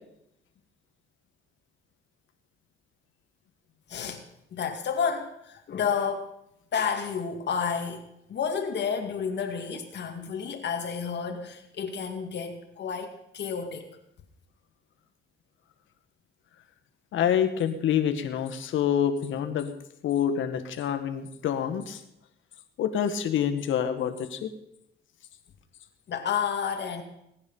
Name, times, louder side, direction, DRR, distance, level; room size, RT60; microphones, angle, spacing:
voice 1, 3.9-4.2 4.5-6.3 6.7-8.0 8.3-13.9 26.1-27.0, left 6 dB, 60° left, 3 dB, 2.3 m, -30 dB
voice 2, 17.1-19.7 20.0-22.0 22.8-24.5, left 9 dB, 75° left, 8 dB, 1.8 m, -27 dB
21.0 x 9.8 x 5.6 m, 0.81 s
cardioid pair, 90°, 20 cm